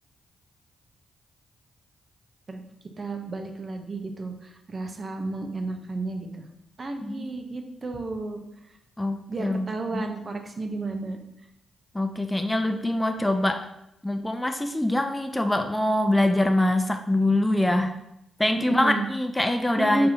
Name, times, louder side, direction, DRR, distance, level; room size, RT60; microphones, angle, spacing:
voice 1, 3.0-6.5 6.8-8.4 9.3-11.2 18.6-19.1 19.8-20.1, right 2 dB, 45° right, 4 dB, 1.0 m, -31 dB
voice 2, 9.0-9.7 9.9-10.0 11.9-13.7 14.0-18.0 18.4-20.1, left 1 dB, 10° left, 6 dB, 0.6 m, -24 dB
5.1 x 4.3 x 4.3 m, 0.82 s
hypercardioid pair, 45°, 0 cm